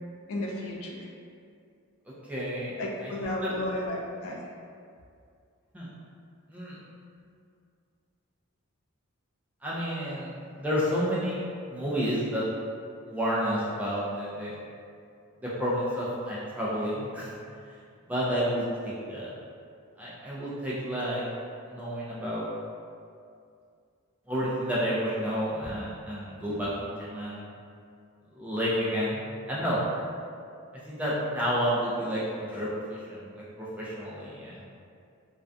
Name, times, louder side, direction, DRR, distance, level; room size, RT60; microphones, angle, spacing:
voice 1, 0.3-1.1 2.8-4.4, left 1 dB, 70° left, -1 dB, 0.3 m, -33 dB
voice 2, 2.3-2.7 3.0-3.5 5.7-5.9 6.5-6.8 9.6-11.4 11.7-12.4 13.1-14.5 15.4-17.3 18.1-19.3 20.0-21.2 21.7-22.5 24.3-27.5 28.3-29.8 30.9-33.3 33.6-34.6, equal, 5° right, -8 dB, 0.3 m, -30 dB
2.3 x 2.2 x 2.5 m, 2.4 s
head